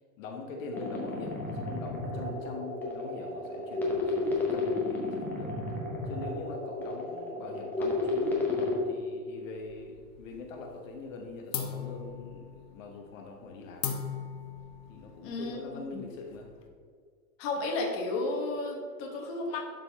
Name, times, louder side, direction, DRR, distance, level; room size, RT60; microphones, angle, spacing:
voice 1, 0.2-5.5 6.1-13.9 14.9-16.5, left 3 dB, 50° left, 2 dB, 1.1 m, -43 dB
sound 1, 0.7-8.7, left 2 dB, 5° left, 0.6 m, -32 dB
sound 2, 9.6-10.5 10.8-11.2 11.5-16.7, left 7 dB, 85° left, 1.3 m, -39 dB
voice 2, 15.2-15.6 17.4-19.6, left 2 dB, 25° left, 0 dB, 1.2 m, -32 dB
11.5 x 4.0 x 3.4 m, 2.1 s
hypercardioid pair, 150°, 49 cm